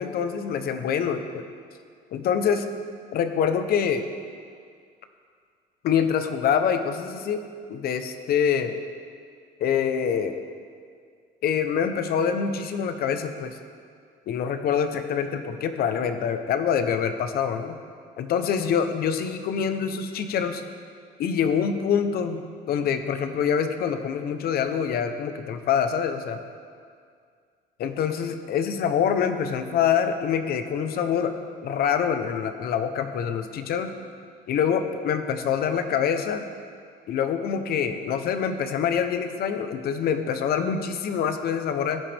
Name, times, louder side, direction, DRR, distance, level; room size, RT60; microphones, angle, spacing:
voice 1, 0.0-1.4 2.1-2.6 3.1-4.0 5.8-7.4 7.7-8.7 9.6-10.4 11.4-13.6 14.3-17.8 18.2-20.6 21.2-26.4 27.8-31.3 31.6-33.9 34.5-36.5 37.1-42.0, left 7 dB, 65° left, 8 dB, 0.9 m, -25 dB
16.5 x 10.0 x 3.5 m, 2.1 s
cardioid pair, 110°, 17 cm